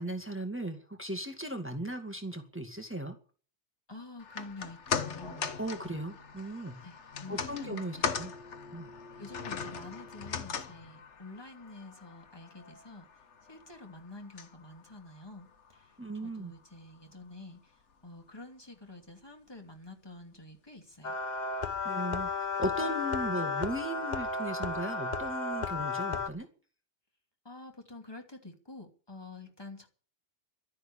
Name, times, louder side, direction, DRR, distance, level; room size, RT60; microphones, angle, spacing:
voice 1, 0.0-3.2 5.6-6.8 7.3-8.3 8.7-8.9 16.0-16.5 21.8-26.5, right 1 dB, 10° right, 1.9 m, -37 dB
voice 2, 3.9-5.5 6.8-8.3 9.2-13.1 13.5-15.9 16.2-17.7 18.0-21.2 27.4-29.9, left 2 dB, 20° left, 2.6 m, -48 dB
sound 1, 4.2-16.6 16.9-17.0, left 6 dB, 90° left, 1.4 m, -40 dB
sound 2, 21.0-26.3, left 4 dB, 40° left, 1.1 m, -33 dB
12.5 x 10.5 x 8.6 m
omnidirectional pair, 1.2 m